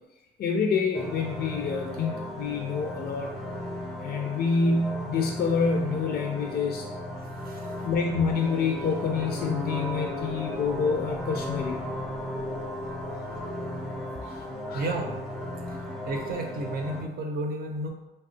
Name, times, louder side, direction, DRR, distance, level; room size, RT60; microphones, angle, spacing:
voice 1, 0.4-3.4 4.0-6.9 7.6-11.8 14.3-14.4 14.7-14.8, left 5 dB, 50° left, 3 dB, 0.4 m, -27 dB
sound 1, 0.9-17.0, left 1 dB, ahead, 0.5 m, -35 dB
voice 2, 14.7-15.2 15.7-15.8 16.0-17.9, right 2 dB, 50° right, 2 dB, 0.6 m, -32 dB
3.4 x 2.1 x 2.7 m, 0.98 s
cardioid pair, 90°, 20 cm